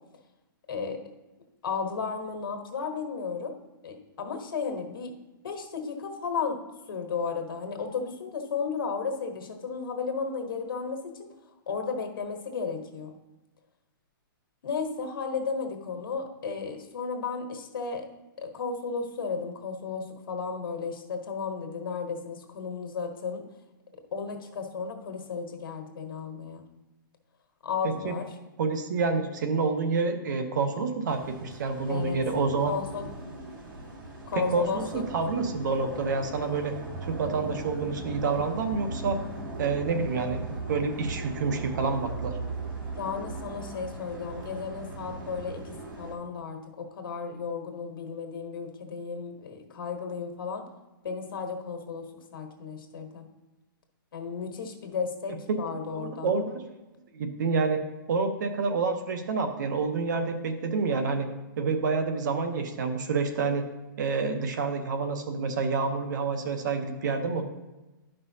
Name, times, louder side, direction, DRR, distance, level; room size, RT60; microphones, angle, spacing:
voice 1, 0.7-1.0 1.6-3.5 3.8-5.1 5.4-6.6 6.9-11.3 11.7-13.2 14.6-18.1 18.4-23.4 24.1-26.6 27.6-28.3 31.9-32.2 32.7-33.1 34.3-35.0 42.9-50.6 51.0-53.2 54.1-56.3, left 5 dB, 75° left, 4 dB, 1.4 m, -34 dB
voice 2, 27.8-28.1 28.6-32.7 34.3-36.7 37.0-39.2 39.6-42.4 55.5-55.6 56.0-56.6 57.1-61.3 61.6-63.6 64.0-67.5, right 4 dB, 55° right, 7 dB, 0.9 m, -28 dB
sound 1, 31.1-46.1, right 2 dB, 70° right, 2.1 m, -38 dB
11.5 x 5.4 x 2.8 m, 1.1 s
hypercardioid pair, 165°, 12 cm